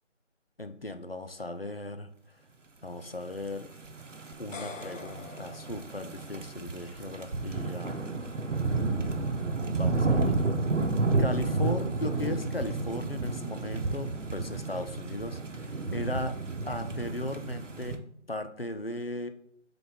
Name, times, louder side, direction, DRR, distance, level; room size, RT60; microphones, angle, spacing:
voice 1, 0.6-2.1 2.8-3.7 4.4-8.0 8.8-10.3 11.2-16.3 16.6-18.0 18.3-19.3, left 1 dB, 50° left, 8 dB, 0.6 m, -37 dB
sound 1, 3.6-18.0, right 3 dB, 75° right, 0.9 m, -31 dB
sound 2, 4.3-6.6, left 4 dB, 85° left, 0.8 m, -45 dB
7.7 x 4.0 x 3.6 m, 0.69 s
figure-of-eight pair, 180°, 37 cm